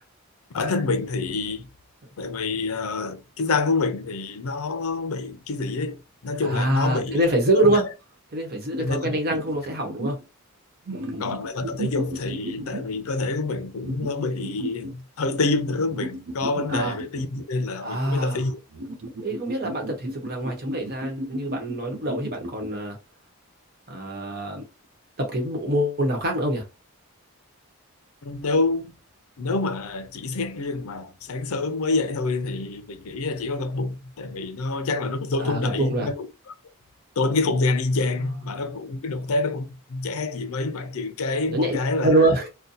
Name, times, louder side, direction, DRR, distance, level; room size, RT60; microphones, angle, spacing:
voice 1, 0.5-1.7 2.2-7.2 7.5-7.8 8.8-9.4 11.2-18.6 28.2-28.9 29.4-36.5 37.2-42.3, left 3 dB, 75° left, 0.5 m, -27 dB
voice 2, 6.4-7.9 8.3-10.2 10.9-11.3 16.7-17.0 17.8-18.4 19.2-23.0 23.9-24.6 25.2-26.6 35.4-36.1 38.2-38.3 41.5-42.5, right 1 dB, 45° right, 1.0 m, -25 dB
sound 1, 8.7-8.8 9.3-10.2 10.9-13.0 13.8-14.9 15.9-17.6 18.7-22.7, right 1 dB, 65° right, 0.6 m, -35 dB
2.7 x 2.2 x 3.9 m
head